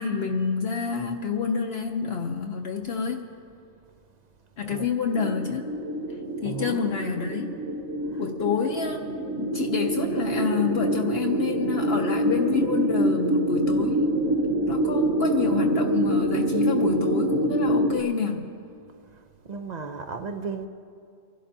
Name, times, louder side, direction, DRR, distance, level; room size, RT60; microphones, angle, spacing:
voice 1, 0.0-3.3 4.6-5.6 6.4-7.5 8.2-9.0 9.4-14.0 14.7-18.5, left 6 dB, 60° left, 0.8 m, -28 dB
voice 2, 4.6-4.9 6.4-6.9 8.1-8.3 19.1-20.7, right 5 dB, 55° right, 0.5 m, -36 dB
sound 1, 5.1-18.0, right 1 dB, 90° right, 1.2 m, -25 dB
29.5 x 11.5 x 2.7 m
omnidirectional pair, 1.3 m